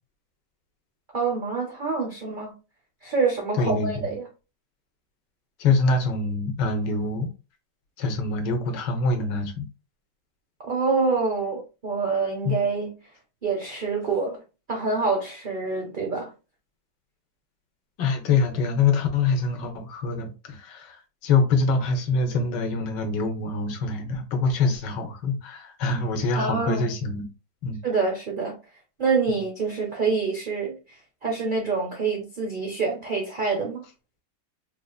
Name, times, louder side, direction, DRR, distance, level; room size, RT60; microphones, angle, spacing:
voice 1, 1.1-2.5 3.0-4.2 10.6-12.9 13.4-14.4 14.7-16.3 26.4-26.9 27.8-28.6 29.0-33.9, right 4 dB, 65° right, 0.5 m, -26 dB
voice 2, 3.6-3.9 5.6-7.3 8.0-9.7 12.4-12.5 18.0-27.2 27.6-27.8 29.3-29.4, left 3 dB, 75° left, 1.4 m, -25 dB
4.0 x 2.5 x 2.3 m
omnidirectional pair, 1.9 m